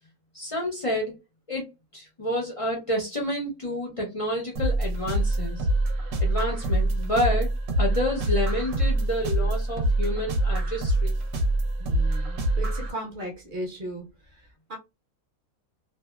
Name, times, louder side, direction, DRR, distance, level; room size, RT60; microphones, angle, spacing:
voice 1, 0.3-1.2 1.5-1.6 1.9-5.6 6.2-7.5 7.8-11.2, left 1 dB, 50° left, 0.4 m, -29 dB
sound 1, 4.6-12.9, right 1 dB, 70° right, 0.9 m, -25 dB
voice 2, 11.8-14.8, right 1 dB, 45° right, 0.7 m, -37 dB
2.7 x 2.1 x 2.2 m
omnidirectional pair, 1.6 m